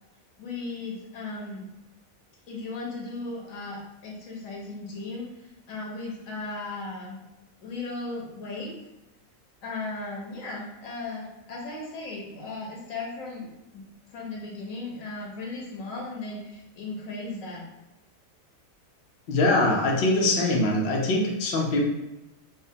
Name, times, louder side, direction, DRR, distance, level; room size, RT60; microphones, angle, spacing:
voice 1, 0.4-1.7 2.5-7.2 7.6-8.7 9.6-17.7, left 3 dB, 80° left, -2 dB, 1.3 m, -36 dB
voice 2, 19.3-21.9, left 2 dB, 55° left, -1 dB, 0.7 m, -23 dB
4.9 x 2.1 x 2.7 m, 0.95 s
omnidirectional pair, 1.4 m